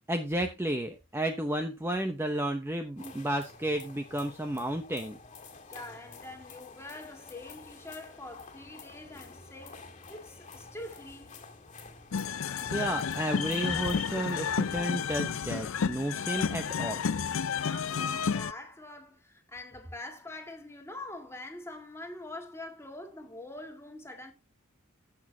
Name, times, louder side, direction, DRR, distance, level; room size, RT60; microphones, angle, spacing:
voice 1, 0.1-5.2 12.7-17.0, right 1 dB, 10° right, 0.8 m, -32 dB
sound 1, 3.0-15.1, left 6 dB, 35° left, 2.0 m, -46 dB
voice 2, 5.7-11.5 17.6-24.3, left 2 dB, 15° left, 1.9 m, -45 dB
sound 2, 12.1-18.5, left 6 dB, 70° left, 0.5 m, -31 dB
15.5 x 6.4 x 2.8 m
head